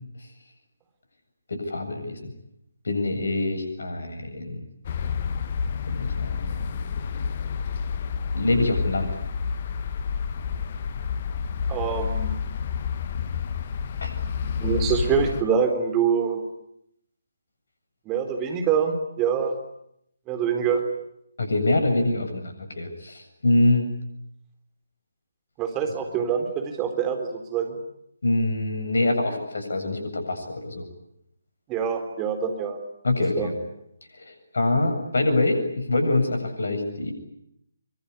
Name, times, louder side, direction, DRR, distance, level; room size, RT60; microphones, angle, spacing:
voice 1, 1.5-2.3 2.8-4.6 5.9-6.7 8.3-9.1 14.0-14.1 21.4-23.9 28.2-30.8 33.0-33.5 34.2-37.1, left 2 dB, 60° left, 5 dB, 7.8 m, -25 dB
sound 1, 4.8-15.4, left 6 dB, 35° left, 1.7 m, -29 dB
voice 2, 11.7-12.4 14.6-16.4 18.1-19.6 20.3-20.8 25.6-27.8 31.7-32.8 33.4-33.5, right 7 dB, 15° right, 5 dB, 4.0 m, -25 dB
24.5 x 24.5 x 9.8 m, 0.76 s
figure-of-eight pair, 145°, 0 cm